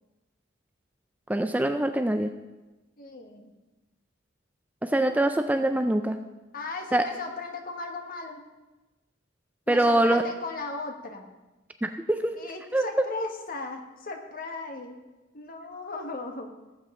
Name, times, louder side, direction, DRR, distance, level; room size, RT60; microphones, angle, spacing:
voice 1, 1.3-2.3 4.8-6.2 6.9-7.1 9.7-10.2 11.8-12.3 12.7-12.8, right 1 dB, 10° right, 7 dB, 0.4 m, -24 dB
voice 2, 3.0-3.5 5.0-5.2 6.5-8.4 9.7-11.3 12.3-15.0 15.3-16.5, left 3 dB, 45° left, 4 dB, 1.4 m, -37 dB
18.0 x 7.6 x 3.7 m, 1.1 s
head